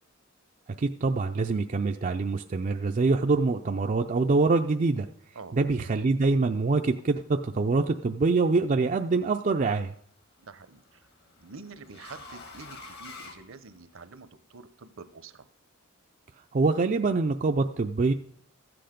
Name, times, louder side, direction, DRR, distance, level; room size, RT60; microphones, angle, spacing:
voice 1, 0.8-5.1 5.5-9.9 16.5-18.1, right 3 dB, 35° right, 5 dB, 0.4 m, -25 dB
sound 1, 8.4-8.8 10.2-14.2, left 3 dB, 50° left, 1.4 m, -48 dB
voice 2, 10.4-11.1 11.4-15.5, right 4 dB, 65° right, 12 dB, 0.7 m, -47 dB
13.5 x 7.8 x 5.1 m, 0.64 s
head